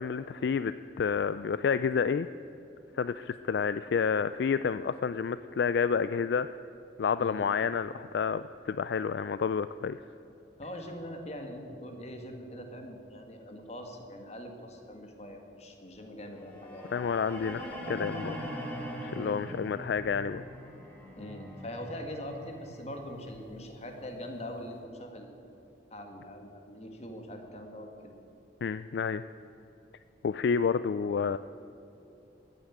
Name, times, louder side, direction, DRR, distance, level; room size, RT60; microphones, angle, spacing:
voice 1, 0.0-2.3 2.9-6.5 7.0-10.0 16.9-18.4 19.0-20.4 28.6-29.2 30.2-31.4, left 6 dB, 65° left, 13 dB, 0.3 m, -29 dB
voice 2, 10.6-17.0 19.1-19.7 21.2-25.5 25.9-28.1, equal, 35° left, 4 dB, 1.7 m, -42 dB
sound 1, 16.4-24.5, equal, 10° left, 2.4 m, -42 dB
14.5 x 9.5 x 8.4 m, 2.8 s
head